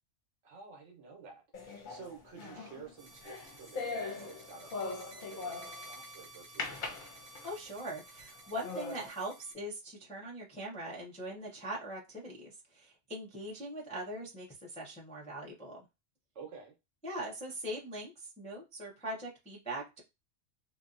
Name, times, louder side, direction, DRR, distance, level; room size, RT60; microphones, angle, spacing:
voice 1, 0.4-7.2 16.3-16.7, right 5 dB, 70° right, 1.0 m, -52 dB
sound 1, 1.5-5.9 6.6-7.7 8.2-8.3 8.6-9.1, left 4 dB, 50° left, 0.7 m, -41 dB
sound 2, 3.0-9.5, right 1 dB, 40° right, 0.7 m, -53 dB
voice 2, 7.4-15.9 17.0-20.0, right 1 dB, 10° left, 0.4 m, -41 dB
2.7 x 2.0 x 2.4 m
omnidirectional pair, 1.3 m